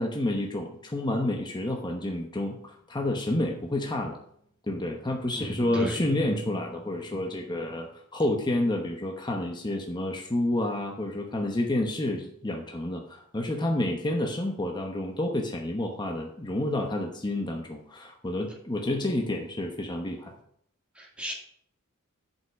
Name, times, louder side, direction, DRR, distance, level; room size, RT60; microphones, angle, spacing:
voice 1, 0.0-4.2 4.7-20.3, left 1 dB, 20° left, 2 dB, 0.9 m, -29 dB
voice 2, 5.3-6.0 20.9-21.3, right 1 dB, 5° right, -3 dB, 2.3 m, -36 dB
8.0 x 5.6 x 5.9 m, 0.66 s
head